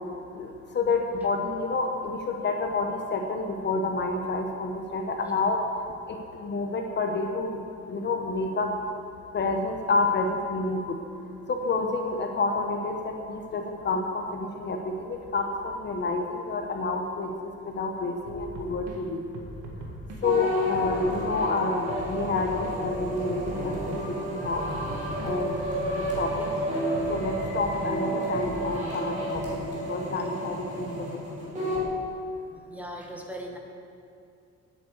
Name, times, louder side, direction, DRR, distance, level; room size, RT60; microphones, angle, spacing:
voice 1, 0.3-5.6 6.4-7.6 7.9-8.8 9.3-11.0 11.5-17.3 17.6-19.2 20.2-24.0 24.2-24.6 25.2-25.6 25.9-26.3 27.1-29.4 29.9-31.0, left 3 dB, 35° left, 3 dB, 1.0 m, -29 dB
sound 1, 18.2-19.0 19.3-20.2 20.7-21.5 21.9-24.0 24.4-26.5 26.9-28.6, right 1 dB, 75° right, 2.0 m, -40 dB
sound 2, 20.2-31.9, equal, 25° right, 3.3 m, -31 dB
voice 2, 32.7-33.6, equal, 5° right, 0 dB, 1.2 m, -38 dB
9.8 x 8.7 x 8.1 m, 2.5 s
cardioid pair, 170°, 30 cm